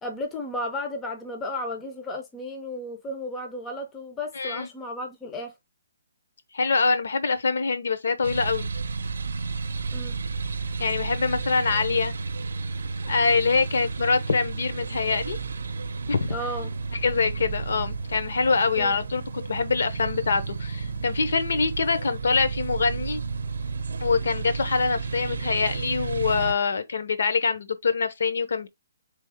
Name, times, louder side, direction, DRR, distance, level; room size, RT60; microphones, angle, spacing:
voice 1, 0.0-5.5 9.9-10.2 16.3-16.7 18.8-18.9, left 1 dB, 10° left, 0.4 m, -33 dB
voice 2, 4.3-4.7 6.5-8.7 10.8-12.1 13.0-15.4 16.1-16.3 17.0-23.2 24.0-28.7, left 4 dB, 65° left, 0.7 m, -24 dB
sound 1, 8.2-26.5, right 4 dB, 80° right, 0.5 m, -32 dB
3.6 x 3.4 x 3.4 m
hypercardioid pair, 175°, 0 cm